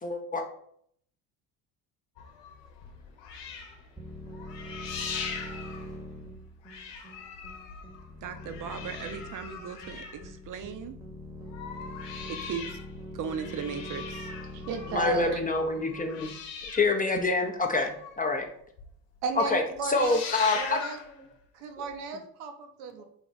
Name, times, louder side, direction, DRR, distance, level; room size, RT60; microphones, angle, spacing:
voice 1, 0.0-0.4 14.9-16.3 16.7-18.5 19.5-20.8 23.0-23.1, left 3 dB, 20° left, 4 dB, 0.5 m, -27 dB
sound 1, 2.2-6.4 6.6-10.9 11.3-18.4 18.8-18.9 19.2-19.5 19.8-21.1 21.9-22.0, left 6 dB, 70° left, 0.9 m, -41 dB
sound 2, 4.0-16.4, left 1 dB, 5° right, 0.9 m, -43 dB
voice 2, 8.2-10.9 12.3-12.8 13.1-14.3, right 7 dB, 45° right, 8 dB, 0.6 m, -37 dB
voice 3, 14.5-15.4 19.2-20.2 20.5-21.0 21.5-23.1, right 5 dB, 80° right, 5 dB, 0.8 m, -34 dB
3.5 x 2.5 x 3.9 m, 0.65 s
supercardioid pair, 70°, 46 cm